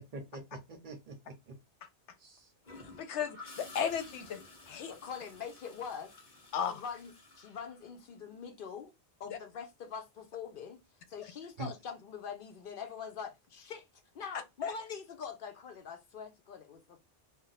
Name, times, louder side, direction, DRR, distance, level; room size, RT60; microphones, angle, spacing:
voice 1, 0.0-1.6 2.2-2.5 11.6-11.7, right 3 dB, 55° right, 0.6 m, -45 dB
Gurgling / Toilet flush, 2.6-8.4 10.4-10.6, left 3 dB, 45° left, 1.0 m, -53 dB
voice 2, 3.0-4.4 4.7-4.9 6.5-6.7 9.3-9.4 14.6-14.7, left 8 dB, 80° left, 0.9 m, -34 dB
voice 3, 4.9-6.1 6.7-8.9 9.2-10.8 11.1-13.9 14.1-17.0, left 6 dB, 60° left, 0.6 m, -44 dB
2.6 x 2.1 x 3.9 m
omnidirectional pair, 1.2 m